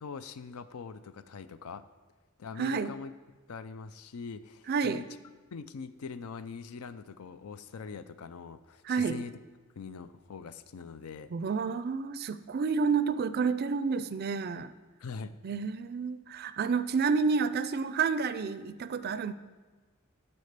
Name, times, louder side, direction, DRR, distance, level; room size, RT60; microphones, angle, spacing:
voice 1, 0.0-1.9 2.4-3.1 3.5-5.0 5.5-9.3 9.8-11.3 15.0-15.3, left 5 dB, 85° left, 12 dB, 0.5 m, -42 dB
voice 2, 2.6-2.9 4.7-5.0 8.9-9.2 11.3-14.7 15.4-19.3, right 5 dB, 45° right, 13 dB, 0.4 m, -29 dB
9.7 x 4.4 x 6.6 m, 1.3 s
head